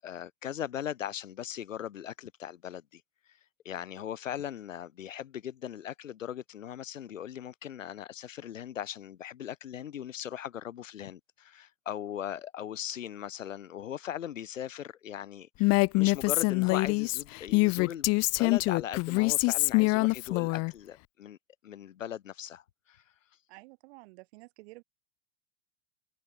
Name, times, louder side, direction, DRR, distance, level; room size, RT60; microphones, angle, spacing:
voice 1, 0.0-3.0 3.3-3.4 3.6-21.4 21.6-23.0, left 10 dB, 65° left, 7.5 m, -39 dB
Female speech woman speaking, 15.6-20.7, left 25 dB, 35° left, 1.2 m, -25 dB
voice 2, 23.5-24.8, right 23 dB, 50° right, 4.8 m, -51 dB
figure-of-eight pair, 90°, 40 cm